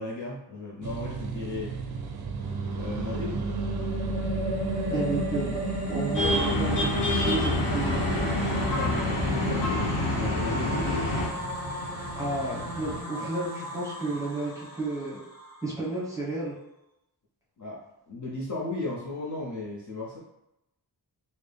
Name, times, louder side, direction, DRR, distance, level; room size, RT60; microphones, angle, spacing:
voice 1, 0.0-1.7 2.7-3.5 5.9-6.0 8.4-10.9 13.2-13.3 17.6-20.2, left 2 dB, 45° left, -5 dB, 0.7 m, -36 dB
sound 1, 0.8-13.0, right 3 dB, 60° right, 0.5 m, -36 dB
sound 2, 2.3-15.7, right 1 dB, 20° left, 1.0 m, -33 dB
voice 2, 4.9-5.6 5.9-8.0 12.1-15.2 15.6-16.5, right 2 dB, 10° right, -8 dB, 1.1 m, -32 dB
sound 3, 6.1-11.3, left 2 dB, 75° left, 0.9 m, -27 dB
4.0 x 2.0 x 3.3 m, 0.86 s
wide cardioid pair, 180°, 42 cm